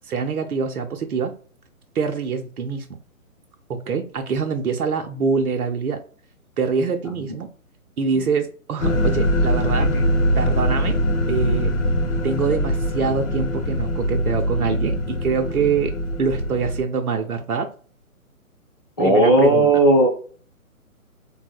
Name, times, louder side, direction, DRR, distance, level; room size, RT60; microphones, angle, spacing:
voice 1, 0.1-1.3 1.9-3.0 3.7-6.0 6.6-7.5 8.0-9.9 10.4-11.0 11.3-11.7 12.2-15.9 16.2-17.7 19.0-19.7, right 5 dB, 85° right, 5 dB, 0.5 m, -24 dB
sound 1, 8.8-16.8, equal, 55° left, 0.7 m, -22 dB
voice 2, 19.0-20.1, right 2 dB, 20° left, -4 dB, 0.4 m, -15 dB
3.6 x 2.0 x 2.4 m, 0.41 s
figure-of-eight pair, 140°, 43 cm